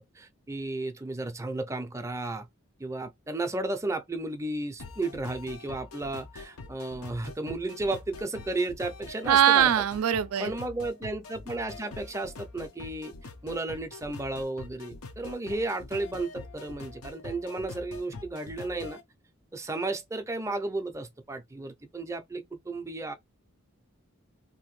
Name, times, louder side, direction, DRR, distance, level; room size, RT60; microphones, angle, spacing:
voice 1, 0.0-2.5 2.8-9.8 10.4-13.1 13.4-19.0 19.5-23.1, right 2 dB, 15° right, 0.4 m, -33 dB
sound 1, 4.8-19.0, left 3 dB, 85° left, 0.7 m, -44 dB
voice 2, 9.3-10.5, right 10 dB, 85° right, 0.4 m, -21 dB
2.8 x 2.6 x 3.0 m
head